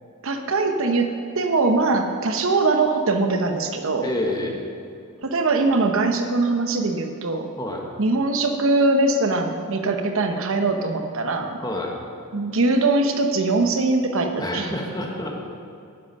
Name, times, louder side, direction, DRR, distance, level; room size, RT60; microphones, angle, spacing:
voice 1, 0.2-4.1 5.2-7.5 8.0-11.6 12.3-14.7, right 3 dB, 65° right, 5 dB, 0.9 m, -22 dB
voice 2, 4.0-4.6 7.6-7.9 11.6-11.9 14.4-15.3, left 1 dB, 20° left, 0 dB, 1.5 m, -28 dB
11.0 x 10.0 x 5.4 m, 2.5 s
head